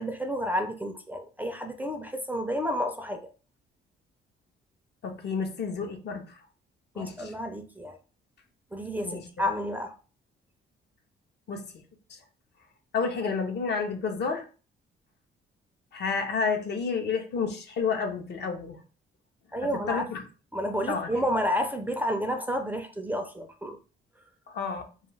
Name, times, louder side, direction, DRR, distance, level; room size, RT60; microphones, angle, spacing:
voice 1, 0.0-3.2 7.0-8.0 8.7-9.9 19.5-20.0 20.5-23.8, equal, 10° right, 5 dB, 0.4 m, -30 dB
voice 2, 5.0-6.4 7.0-7.3 9.0-9.2 11.5-11.7 12.9-14.4 15.9-18.8 19.9-20.2 20.9-21.1 24.5-24.8, left 5 dB, 60° left, 4 dB, 0.6 m, -30 dB
2.3 x 2.3 x 3.1 m, 0.36 s
cardioid pair, 90°, 20 cm